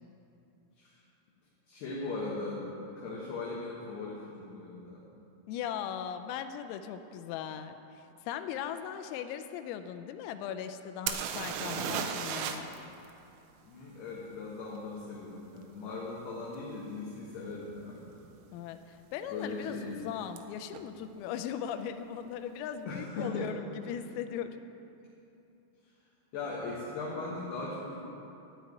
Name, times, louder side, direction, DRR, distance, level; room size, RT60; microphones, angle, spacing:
voice 1, 1.7-2.6 3.0-5.0 13.6-18.0 19.3-20.1 22.9-23.5 26.3-28.0, left 3 dB, 65° left, -5 dB, 3.0 m, -39 dB
voice 2, 5.5-12.7 18.5-24.6, left 9 dB, 85° left, 9 dB, 3.2 m, -39 dB
sound 1, 11.1-12.8 13.0-13.1 16.5-16.6 17.3-17.5 17.7-18.3 20.4-20.5 20.7-20.8, right 7 dB, 85° right, 3.1 m, -34 dB
13.0 x 5.6 x 9.4 m, 2.8 s
omnidirectional pair, 6.0 m